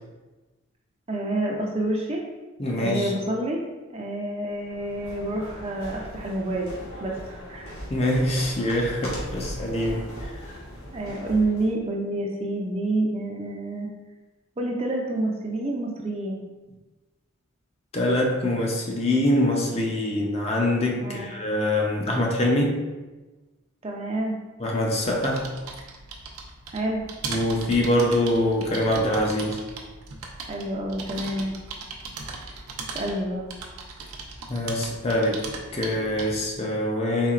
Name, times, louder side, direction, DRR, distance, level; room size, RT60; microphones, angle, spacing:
voice 1, 1.1-2.2 2.8-3.6 3.9-6.7 7.0-7.7 10.9-13.9 14.6-16.4 21.0-21.3 23.8-24.4 26.7-27.0 30.4-31.6 32.9-33.5, right 1 dB, 25° right, 0 dB, 0.4 m, -28 dB
voice 2, 2.6-3.1 7.9-10.1 17.9-22.8 24.6-25.5 27.3-29.6 34.5-37.3, left 1 dB, 30° left, 0 dB, 0.5 m, -24 dB
sound 1, 4.6-11.7, equal, 90° left, 1.4 m, -39 dB
sound 2, 24.9-36.5, right 4 dB, 90° right, 0.6 m, -38 dB
4.3 x 3.9 x 2.4 m, 1.2 s
head